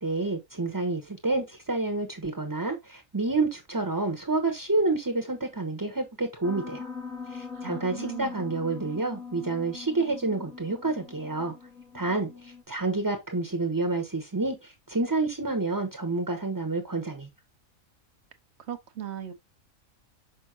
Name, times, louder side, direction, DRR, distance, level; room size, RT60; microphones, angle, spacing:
voice 1, 0.0-6.8 7.3-11.5 11.9-17.3, right 3 dB, 15° right, 0.9 m, -29 dB
Piano, 6.4-12.6, left 5 dB, 80° left, 1.8 m, -41 dB
voice 2, 7.5-8.4 18.7-19.3, right 10 dB, 60° right, 1.0 m, -38 dB
6.3 x 5.4 x 2.8 m
omnidirectional pair, 1.4 m